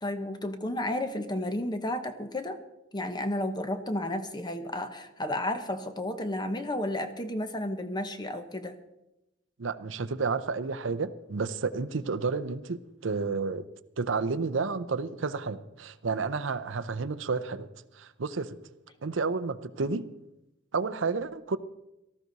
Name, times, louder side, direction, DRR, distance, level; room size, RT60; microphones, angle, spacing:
voice 1, 0.0-2.6 2.9-8.8, left 1 dB, 20° left, 1.1 m, -32 dB
voice 2, 9.6-13.7 14.0-17.7 18.0-18.6 19.0-20.1 20.7-21.6, right 4 dB, 70° right, 0.7 m, -31 dB
18.0 x 14.0 x 4.1 m
head